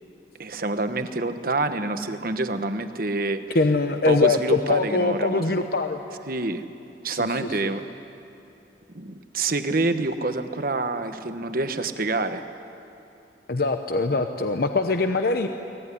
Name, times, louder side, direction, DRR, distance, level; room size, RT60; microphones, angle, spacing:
voice 1, 0.4-3.6 4.0-5.7 6.3-6.6 7.0-7.8 8.9-12.4, right 2 dB, 55° right, 9 dB, 1.2 m, -27 dB
voice 2, 3.5-6.0 7.1-7.3 7.6-7.7 13.5-15.5, left 3 dB, 60° left, 6 dB, 0.9 m, -22 dB
23.5 x 18.5 x 9.9 m, 2.8 s
head